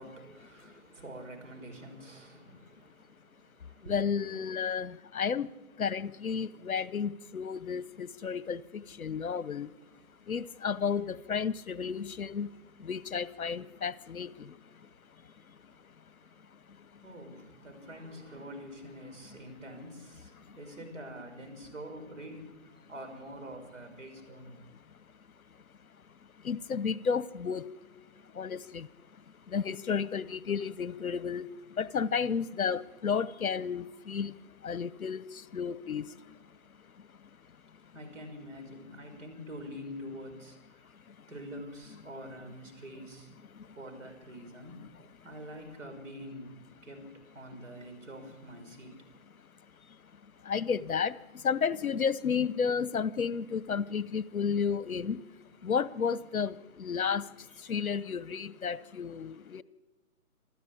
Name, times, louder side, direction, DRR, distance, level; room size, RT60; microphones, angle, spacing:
voice 1, 0.0-4.0 15.2-15.3 16.3-16.4 17.0-24.6 37.9-40.6 41.3-43.3 43.8-44.8 45.2-46.6 46.8-48.9 57.5-57.6, equal, 55° right, 5.9 m, -46 dB
voice 2, 3.8-5.5 5.8-9.7 10.3-12.5 12.8-14.6 20.5-20.6 26.4-27.7 28.3-28.9 29.5-31.5 31.8-34.3 34.6-36.1 43.5-43.7 50.4-55.2 55.6-57.3 57.6-59.6, left 6 dB, 70° left, 1.0 m, -32 dB
27.0 x 14.0 x 8.7 m
hypercardioid pair, 165°, 44 cm